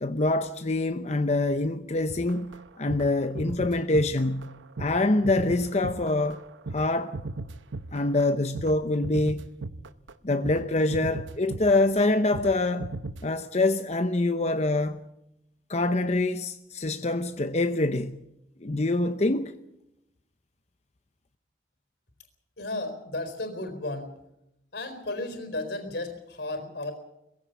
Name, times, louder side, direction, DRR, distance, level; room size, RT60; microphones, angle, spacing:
voice 1, 0.0-4.5 4.8-6.4 6.7-7.2 7.9-9.4 10.2-12.9 13.2-15.0 15.7-18.2 18.6-19.5, left 2 dB, 35° left, 0.7 m, -25 dB
sound 1, 2.1-8.8 9.0-10.1 10.4-10.6 10.9-12.0 12.3-12.5 12.8-13.2, right 2 dB, 85° right, 0.9 m, -37 dB
voice 2, 22.6-24.2 24.7-26.9, left 2 dB, 60° left, 4.3 m, -34 dB
21.5 x 16.0 x 8.2 m
head